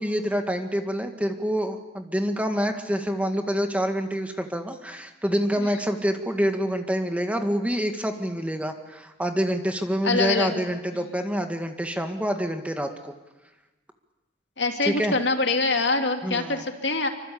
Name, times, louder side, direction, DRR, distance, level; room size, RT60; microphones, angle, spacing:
voice 1, 0.0-13.1 14.8-15.2 16.2-16.6, equal, 5° right, 6 dB, 1.8 m, -27 dB
voice 2, 10.0-10.6 14.6-17.1, left 3 dB, 65° left, 5 dB, 2.8 m, -24 dB
26.5 x 25.0 x 8.6 m, 1.0 s
head